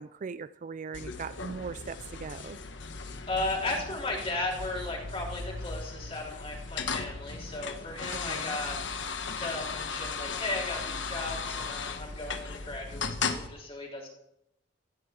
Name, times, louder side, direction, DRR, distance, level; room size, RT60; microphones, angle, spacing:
voice 1, 0.0-2.6 8.1-8.6, right 5 dB, 45° right, 15 dB, 0.4 m, -40 dB
sound 1, 0.9-13.5, left 5 dB, 90° left, 1.3 m, -37 dB
voice 2, 3.3-8.8 9.4-14.1, left 2 dB, 35° left, -2 dB, 4.4 m, -35 dB
16.5 x 15.0 x 3.8 m, 0.82 s
head